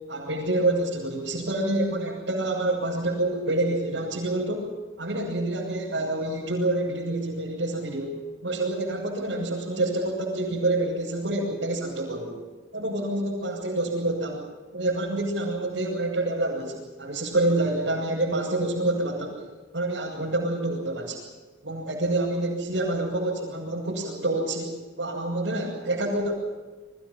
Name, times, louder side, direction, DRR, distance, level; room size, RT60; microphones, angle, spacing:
voice 1, 0.1-4.7 5.0-12.4 12.7-14.4 14.7-19.4 19.7-21.2 21.6-26.3, right 2 dB, 85° right, -6 dB, 7.3 m, -27 dB
29.5 x 23.5 x 5.7 m, 1.3 s
head